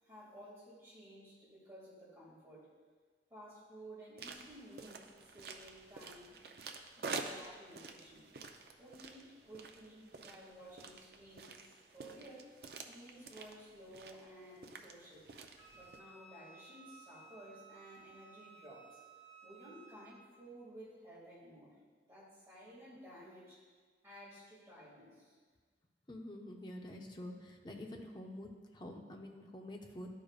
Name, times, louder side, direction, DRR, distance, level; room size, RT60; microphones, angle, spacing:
voice 1, 0.0-2.7 3.3-5.1 5.3-6.4 7.0-8.3 8.8-11.6 11.9-12.5 12.9-15.3 15.7-19.0 19.4-21.7 22.0-23.6 24.0-25.4, equal, 15° right, -8 dB, 2.1 m, -54 dB
sound 1, 4.2-16.0, right 4 dB, 65° right, 0.5 m, -49 dB
Wind instrument woodwind instrument, 15.6-20.2, right 4 dB, 50° left, 1.3 m, -58 dB
voice 2, 26.1-30.1, left 1 dB, 25° left, 2 dB, 0.6 m, -47 dB
12.0 x 4.9 x 2.4 m, 1.5 s
head